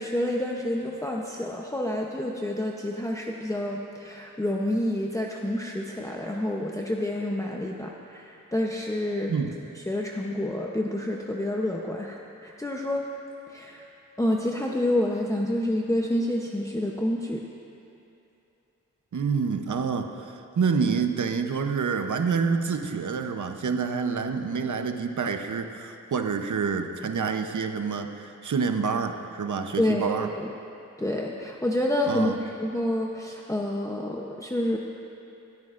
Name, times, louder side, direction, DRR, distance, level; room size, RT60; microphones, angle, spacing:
voice 1, 0.0-9.3 9.9-13.1 13.5-13.9 14.2-17.4 29.8-30.5 31.0-34.8, left 1 dB, 10° left, -2 dB, 0.7 m, -28 dB
voice 2, 19.1-30.3 32.1-32.4, right 5 dB, 60° right, 6 dB, 0.8 m, -27 dB
19.5 x 13.0 x 2.5 m, 2.7 s
wide cardioid pair, 85°, 33 cm